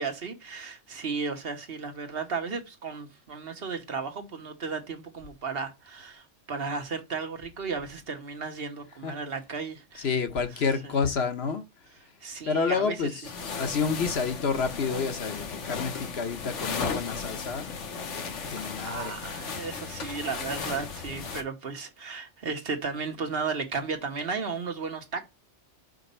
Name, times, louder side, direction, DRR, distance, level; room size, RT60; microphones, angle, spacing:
voice 1, 0.0-11.0 11.9-13.3 18.6-25.3, right 5 dB, 55° right, 1.2 m, -35 dB
voice 2, 10.0-11.6 12.5-13.1 13.5-17.6 18.0-19.1, left 5 dB, 60° left, 1.2 m, -29 dB
sound 1, 13.2-21.4, left 5 dB, 80° left, 1.5 m, -36 dB
5.2 x 4.1 x 5.4 m
omnidirectional pair, 1.2 m